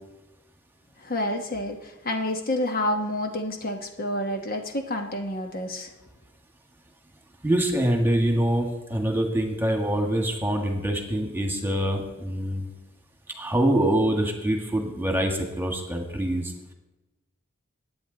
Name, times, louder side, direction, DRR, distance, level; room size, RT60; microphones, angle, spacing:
voice 1, 1.0-5.9, left 1 dB, 45° left, 4 dB, 1.1 m, -29 dB
voice 2, 7.4-12.7 13.4-16.7, right 1 dB, 10° right, 3 dB, 1.7 m, -25 dB
21.0 x 9.0 x 4.0 m, 1.0 s
head